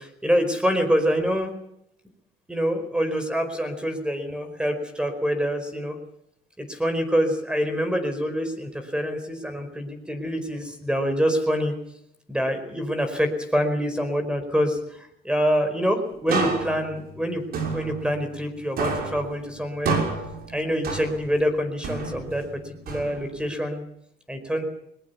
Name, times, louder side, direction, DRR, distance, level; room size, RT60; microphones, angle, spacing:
voice 1, 0.0-1.5 2.5-6.0 6.6-11.7 12.3-17.4 17.7-20.0 20.5-23.8 24.3-24.7, equal, 5° right, 8 dB, 4.8 m, -26 dB
sound 1, 16.3-18.5 18.8-21.4 21.8-23.5, right 4 dB, 65° right, 6.3 m, -30 dB
21.0 x 21.0 x 7.1 m, 0.74 s
cardioid pair, 110°, 17 cm